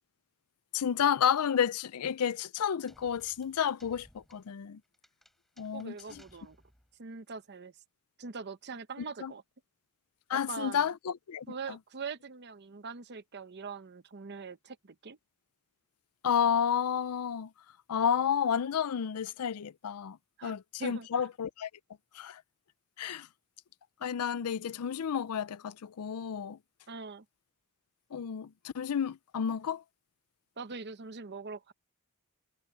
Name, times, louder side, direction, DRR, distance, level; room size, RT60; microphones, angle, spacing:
voice 1, 0.7-4.8 5.6-6.2 9.2-9.3 10.3-11.8 16.2-17.5 17.9-20.2 20.4-21.7 22.1-22.4 23.0-23.3 24.0-26.6 28.1-29.8, left 8 dB, 85° left, 0.5 m, -31 dB
sound 1, 2.9-7.0, equal, ahead, 4.3 m, -62 dB
voice 2, 5.7-6.6 7.0-7.7 8.2-9.4 10.3-10.9 11.5-15.2 20.4-20.5 20.8-21.1 26.9-27.2 30.6-31.7, right 5 dB, 50° right, 0.8 m, -42 dB
head